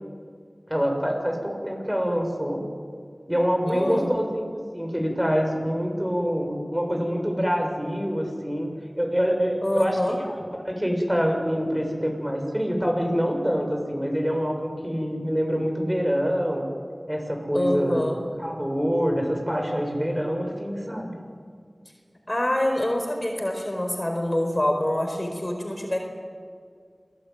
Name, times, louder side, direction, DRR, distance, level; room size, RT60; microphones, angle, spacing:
voice 1, 0.7-2.6 3.3-4.4 4.7-10.4 10.7-16.6 17.1-18.1 18.4-21.1, equal, 10° right, 2 dB, 7.1 m, -25 dB
voice 2, 3.7-4.1 9.6-10.2 17.5-18.3 22.3-26.0, left 1 dB, 35° left, 2 dB, 4.6 m, -26 dB
27.5 x 19.5 x 9.5 m, 2.1 s
wide cardioid pair, 45°, 0 cm